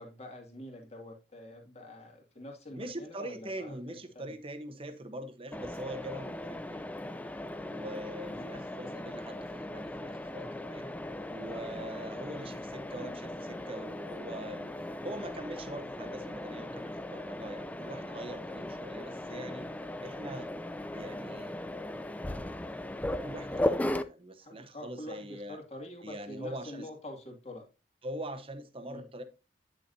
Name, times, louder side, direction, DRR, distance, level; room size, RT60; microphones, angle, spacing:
voice 1, 0.0-3.8 4.1-4.3 8.3-8.5 24.4-27.6 28.9-29.0, left 1 dB, 35° left, 2.3 m, -46 dB
voice 2, 2.7-6.9 7.6-10.9 11.3-14.7 15.0-19.7 20.0-20.5 20.9-21.6 23.2-25.6 26.0-26.9 28.0-29.2, right 1 dB, 30° right, 1.0 m, -43 dB
Mechanisms, 5.5-24.0, left 1 dB, 10° left, 0.4 m, -38 dB
9.7 x 6.8 x 2.7 m
head